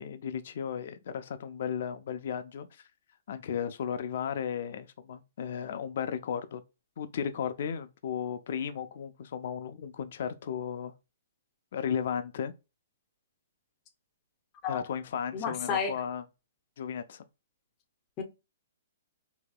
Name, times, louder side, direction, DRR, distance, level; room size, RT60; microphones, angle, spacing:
voice 1, 0.0-2.8 3.3-6.6 7.0-10.9 11.7-12.5 14.7-16.2 16.8-17.2, left 8 dB, 60° left, 0.4 m, -35 dB
voice 2, 15.3-16.0 18.2-18.3, left 6 dB, 25° left, 0.7 m, -31 dB
4.7 x 2.7 x 2.2 m
hypercardioid pair, 150°, 0 cm